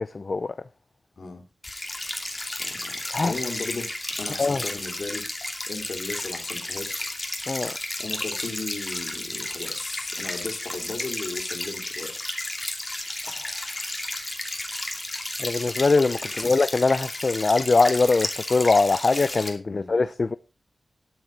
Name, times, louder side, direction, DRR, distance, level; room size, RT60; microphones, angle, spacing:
voice 1, 0.1-0.5 3.0-3.3 4.4-4.6 7.5-7.7 15.4-20.3, left 3 dB, 45° left, 0.6 m, -22 dB
sound 1, 1.6-19.5, left 1 dB, 15° left, 2.6 m, -33 dB
voice 2, 2.6-5.3 5.7-7.1 8.0-12.2 16.2-16.5 19.7-19.9, left 3 dB, 60° left, 3.2 m, -36 dB
12.5 x 7.9 x 5.2 m
wide cardioid pair, 100°, 0 cm